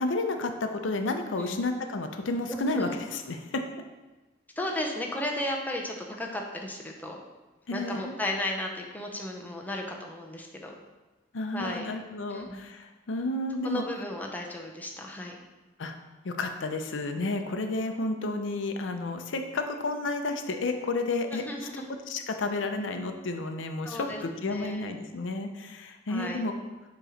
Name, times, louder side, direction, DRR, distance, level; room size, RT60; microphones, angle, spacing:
voice 1, 0.0-3.6 7.7-8.2 11.3-13.8 15.8-16.0 16.2-26.5, left 2 dB, 80° left, 6 dB, 0.6 m, -31 dB
voice 2, 2.5-2.9 4.6-7.2 7.7-10.7 11.5-11.9 12.3-12.6 13.6-15.4 21.3-21.9 23.8-24.9 26.1-26.5, left 1 dB, 10° left, 0 dB, 0.7 m, -35 dB
7.5 x 3.1 x 5.0 m, 1.2 s
head